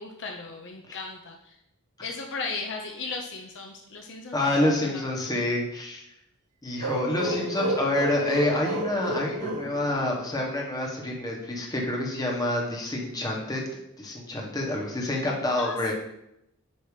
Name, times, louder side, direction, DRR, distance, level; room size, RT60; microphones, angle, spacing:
voice 1, 0.0-1.6 2.0-4.8 15.6-15.9, left 4 dB, 55° left, 1 dB, 0.7 m, -36 dB
voice 2, 4.3-6.0 6.6-13.6 14.0-15.9, left 1 dB, 15° left, -1 dB, 1.3 m, -27 dB
sound 1, 6.8-10.5, right 1 dB, 85° right, 0.7 m, -31 dB
8.3 x 3.0 x 4.9 m, 0.81 s
head